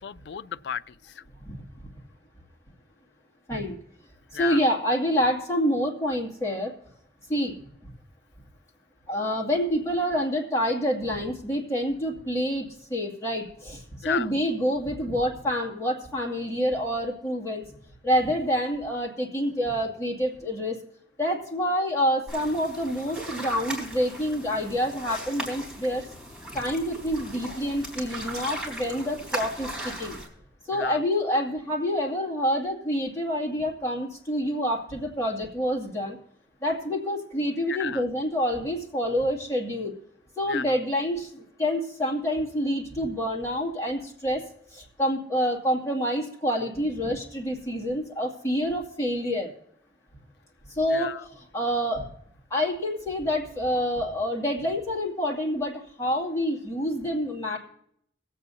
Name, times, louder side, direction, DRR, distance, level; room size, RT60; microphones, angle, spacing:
voice 1, 0.0-1.2 4.3-4.6 14.0-14.3 30.7-31.0 37.7-38.0 40.5-40.7 50.9-51.2, left 8 dB, 70° left, 0.4 m, -33 dB
voice 2, 4.3-6.7 7.3-7.6 9.1-17.6 18.0-20.8 21.2-26.0 26.5-30.2 30.7-36.2 36.6-39.9 40.4-44.4 44.7-49.5 50.8-52.1 52.5-57.6, equal, 15° left, 2.3 m, -27 dB
sound 1, 22.3-30.3, right 1 dB, 5° right, 3.8 m, -38 dB
24.0 x 8.4 x 2.7 m
head